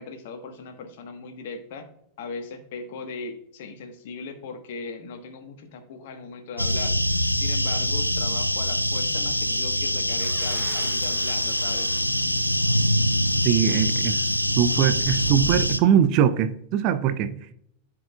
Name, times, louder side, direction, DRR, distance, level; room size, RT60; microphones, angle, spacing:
voice 1, 0.0-1.9 2.2-6.9 7.3-11.9, left 4 dB, 55° left, 7 dB, 1.1 m, -38 dB
sound 1, 6.6-15.8, equal, 90° left, 0.4 m, -24 dB
sound 2, 10.1-15.7, right 1 dB, 15° right, 1.0 m, -42 dB
voice 2, 13.4-17.4, right 9 dB, 40° right, 12 dB, 0.5 m, -22 dB
13.5 x 4.7 x 2.3 m, 0.70 s
figure-of-eight pair, 90°, 0 cm